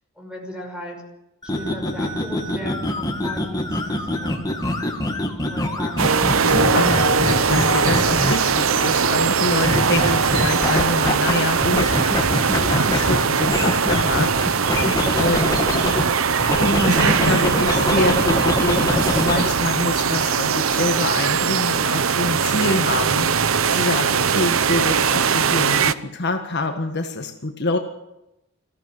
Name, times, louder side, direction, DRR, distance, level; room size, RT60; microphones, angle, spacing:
voice 1, 0.2-1.0 1.6-4.4 4.6-4.8 5.4-6.3, left 1 dB, 5° right, 1 dB, 5.9 m, -37 dB
sound 1, 1.4-8.6 9.6-11.3 11.6-16.0 16.4-19.5, left 1 dB, 20° left, 2.3 m, -24 dB
sound 2, 6.0-25.9, right 6 dB, 80° right, 0.8 m, -20 dB
voice 2, 6.4-14.9 15.2-15.6 16.6-27.8, left 2 dB, 55° left, 4 dB, 1.6 m, -26 dB
20.0 x 15.0 x 9.5 m, 0.92 s
head